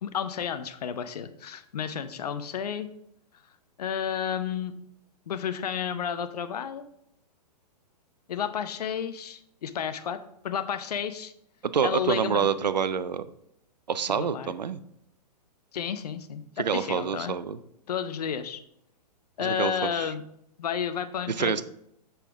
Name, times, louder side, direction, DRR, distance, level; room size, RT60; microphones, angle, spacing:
voice 1, 0.0-2.9 3.8-4.7 5.3-6.8 8.3-10.2 10.4-11.3 11.8-12.5 14.1-14.5 15.7-16.4 16.7-17.4 17.9-18.6 19.4-20.2 20.6-21.6, left 8 dB, 65° left, 11 dB, 0.7 m, -31 dB
voice 2, 11.6-13.3 13.9-14.8 16.6-17.6 19.4-20.1 21.3-21.6, right 7 dB, 85° right, 14 dB, 0.5 m, -27 dB
7.0 x 5.7 x 3.5 m, 0.76 s
figure-of-eight pair, 115°, 21 cm